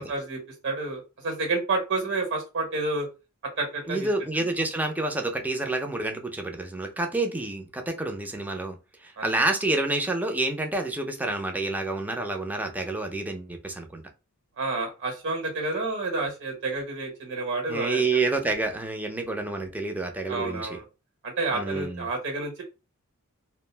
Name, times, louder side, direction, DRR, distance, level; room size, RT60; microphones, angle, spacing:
voice 1, 0.0-3.1 3.6-4.1 4.4-4.5 9.2-9.3 14.6-18.0 20.3-20.8 21.2-22.6, right 3 dB, 55° right, 1.0 m, -29 dB
voice 2, 3.9-8.8 9.0-14.0 17.7-20.8 21.5-22.1, right 2 dB, 5° right, 0.4 m, -28 dB
2.5 x 2.1 x 3.2 m
head